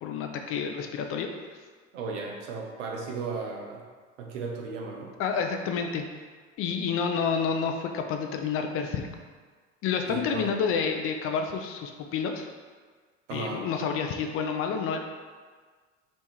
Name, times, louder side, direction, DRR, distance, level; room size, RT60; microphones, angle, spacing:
voice 1, 0.0-1.3 5.2-6.0 6.6-9.1 9.8-12.5 13.3-15.0, left 6 dB, 35° left, 4 dB, 0.5 m, -29 dB
voice 2, 1.9-3.8 4.2-5.1 10.1-10.5 13.3-13.6, right 4 dB, 70° right, 0 dB, 0.9 m, -35 dB
3.5 x 3.1 x 4.4 m, 1.5 s
figure-of-eight pair, 70°, 37 cm